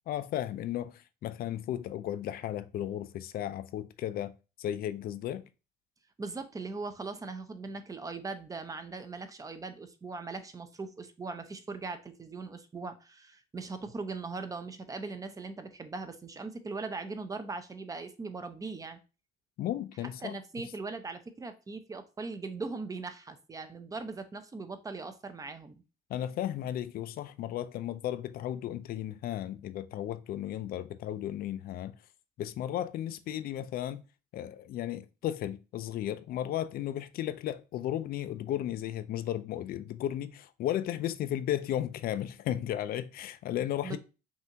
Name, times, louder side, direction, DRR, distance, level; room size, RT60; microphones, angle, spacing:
voice 1, 0.1-5.5 19.6-20.4 26.1-31.9 32.4-34.0 34.3-44.0, left 11 dB, 60° left, 0.4 m, -34 dB
voice 2, 6.2-19.0 20.2-25.8 43.8-44.0, right 3 dB, 20° right, 0.6 m, -40 dB
5.6 x 2.5 x 2.8 m
cardioid pair, 110°, 17 cm